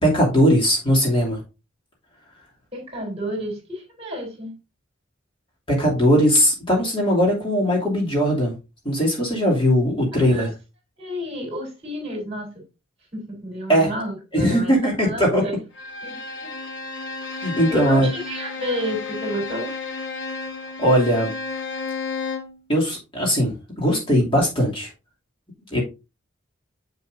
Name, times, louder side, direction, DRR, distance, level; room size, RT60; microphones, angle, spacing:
voice 1, 0.0-1.4 5.7-8.5 8.8-10.5 13.7-13.9 14.3-15.4 17.4-18.1 20.8-21.3 22.7-24.9 25.7-25.8, equal, 25° left, 2.8 m, -19 dB
voice 2, 2.7-4.5 10.1-10.5 11.0-12.6 13.1-15.5 16.0-16.6 17.7-19.7, equal, 30° right, 3.9 m, -31 dB
Bowed string instrument, 15.7-22.6, left 4 dB, 60° left, 1.2 m, -32 dB
7.5 x 7.2 x 2.7 m
head